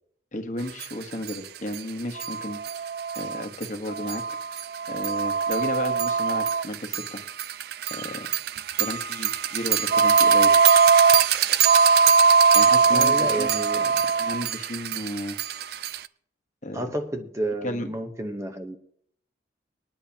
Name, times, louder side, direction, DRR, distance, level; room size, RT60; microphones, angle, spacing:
voice 1, 0.3-4.2 4.9-7.2 7.9-8.3 8.8-10.6 12.5-13.5 14.2-15.4 16.6-17.0 17.6-17.9, left 1 dB, 40° left, 6 dB, 1.2 m, -33 dB
sound 1, 0.8-0.9 1.3-1.4 1.7-1.8 2.2-16.1, right 6 dB, 55° right, 0.4 m, -21 dB
voice 2, 12.9-14.1 16.7-18.8, right 1 dB, 15° right, 4 dB, 0.9 m, -31 dB
20.5 x 10.5 x 2.9 m, 0.66 s
head